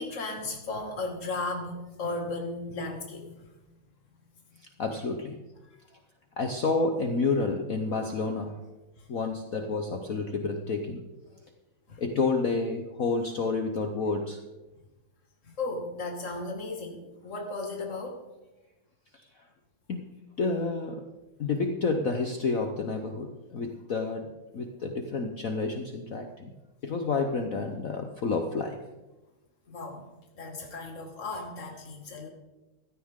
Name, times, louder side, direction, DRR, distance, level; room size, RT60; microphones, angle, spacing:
voice 1, 0.0-3.5 5.6-5.8 9.0-9.1 11.9-12.0 15.4-18.2 29.7-30.1 30.3-32.3, left 2 dB, 35° left, 1 dB, 2.5 m, -35 dB
voice 2, 4.8-5.4 6.4-8.6 9.1-11.0 12.0-14.4 19.9-20.1 20.4-21.1 21.4-24.3 24.5-26.5 26.8-28.8, left 3 dB, 50° left, 5 dB, 1.1 m, -29 dB
16.0 x 13.5 x 3.7 m, 1.1 s
omnidirectional pair, 2.3 m